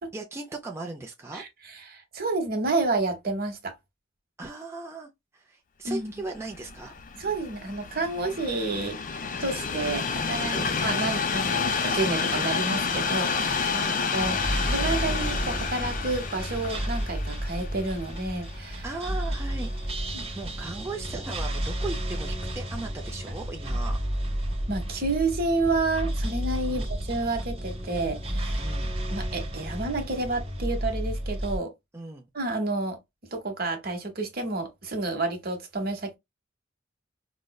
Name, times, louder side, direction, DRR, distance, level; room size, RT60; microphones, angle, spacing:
voice 1, 0.1-1.4 4.4-6.9 10.5-10.7 13.7-14.0 18.8-24.0 26.7-26.9 28.6-28.9 31.9-32.2, right 2 dB, 15° right, 0.4 m, -37 dB
voice 2, 1.9-3.7 5.8-6.1 7.1-9.0 9.4-13.7 14.1-14.4 14.7-18.8 20.1-20.3 24.7-28.6 29.1-31.7 32.3-33.0 33.3-36.2, right 3 dB, 50° right, 1.0 m, -30 dB
Train, 6.4-19.6 20.2-20.4, left 5 dB, 45° left, 0.5 m, -30 dB
sound 1, 14.2-31.6, right 1 dB, 30° right, 0.9 m, -31 dB
4.9 x 2.1 x 2.2 m
head